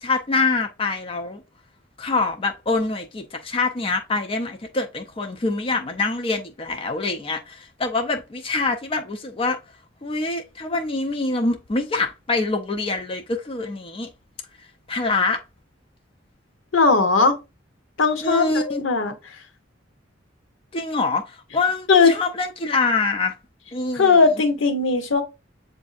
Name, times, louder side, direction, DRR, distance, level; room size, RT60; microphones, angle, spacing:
voice 1, 0.0-1.4 2.0-9.6 10.0-14.1 14.9-15.4 18.2-18.8 20.7-21.2 21.5-23.3 23.7-24.1, left 3 dB, 30° left, 0.5 m, -25 dB
voice 2, 16.7-17.4 18.0-19.1 21.9-22.1 23.9-25.2, left 4 dB, 85° left, 0.8 m, -18 dB
7.2 x 2.6 x 2.4 m
head